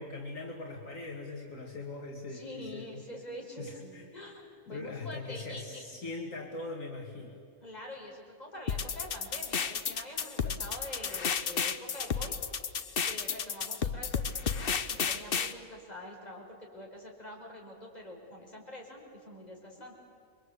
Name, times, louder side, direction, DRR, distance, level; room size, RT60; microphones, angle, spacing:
voice 1, 0.0-3.0 3.6-4.0 4.7-7.4 10.4-10.6, left 3 dB, 65° left, 0 dB, 2.6 m, -41 dB
voice 2, 2.3-5.8 7.6-12.4 13.0-19.9, left 1 dB, 30° left, -1 dB, 5.4 m, -45 dB
sound 1, 8.7-15.5, left 6 dB, 45° left, 1.0 m, -32 dB
29.0 x 23.5 x 8.3 m, 2.3 s
omnidirectional pair, 1.5 m